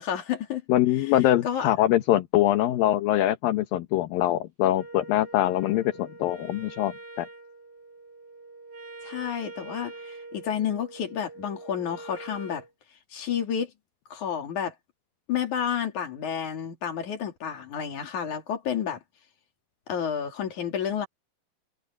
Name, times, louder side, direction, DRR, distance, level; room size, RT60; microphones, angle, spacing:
voice 1, 0.0-0.6 1.4-1.7 9.0-12.6 13.1-13.7 14.1-14.7 15.3-19.0 19.9-21.1, left 8 dB, 55° left, 4.0 m, -30 dB
voice 2, 0.7-6.9 7.2-7.3, left 13 dB, 75° left, 2.8 m, -23 dB
Wind instrument woodwind instrument, 4.7-12.7, right 3 dB, 65° right, 8.7 m, -44 dB
omnidirectional pair, 4.3 m